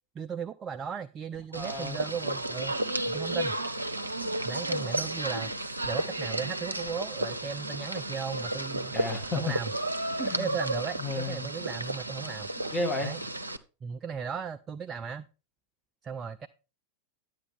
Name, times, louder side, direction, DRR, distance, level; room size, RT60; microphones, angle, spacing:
voice 1, 0.2-2.8 3.1-3.6 4.4-5.5 5.8-8.9 9.3-9.7 10.4-12.5 13.0-13.2 13.8-15.3 16.0-16.5, right 6 dB, 25° right, 10 dB, 0.4 m, -36 dB
voice 2, 1.5-2.0 8.9-9.5 10.2-10.6 11.0-11.5 12.3-12.4 12.7-13.1, left 2 dB, 15° left, 4 dB, 2.1 m, -32 dB
sound 1, 1.5-13.6, right 1 dB, 85° right, 0.6 m, -33 dB
11.0 x 8.0 x 3.6 m, 0.32 s
figure-of-eight pair, 90°, 0 cm